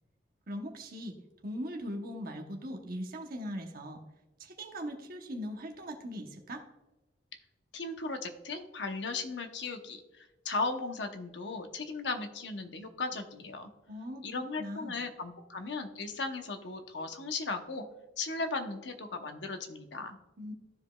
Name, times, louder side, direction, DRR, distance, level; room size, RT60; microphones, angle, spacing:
voice 1, 0.5-1.1 1.4-4.0 4.4-6.6 13.9-15.0 20.4-20.5, equal, 55° right, 3 dB, 0.9 m, -40 dB
voice 2, 7.7-13.7 14.2-17.8 18.2-20.2, left 3 dB, 70° left, 6 dB, 0.9 m, -37 dB
14.0 x 5.1 x 2.3 m, 1.0 s
head